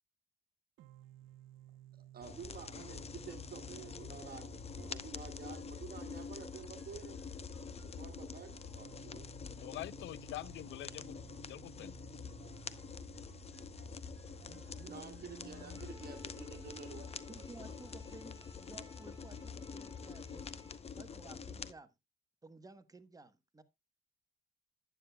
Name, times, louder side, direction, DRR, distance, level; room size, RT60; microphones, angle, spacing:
sound 1, 0.8-16.8, right 13 dB, 80° right, 0.6 m, -57 dB
voice 1, 1.9-7.4 7.8-9.3 14.8-17.7, right 6 dB, 50° right, 1.6 m, -50 dB
sound 2, 2.2-21.7, left 6 dB, 30° left, 0.7 m, -47 dB
voice 2, 9.6-11.2 11.5-11.9, left 14 dB, 75° left, 0.5 m, -45 dB
sound 3, 15.5-20.8, left 4 dB, 15° left, 3.3 m, -60 dB
voice 3, 17.3-20.6 21.0-21.9 22.4-23.6, right 3 dB, 20° right, 1.1 m, -55 dB
11.5 x 9.3 x 2.2 m
cardioid pair, 90°, 20 cm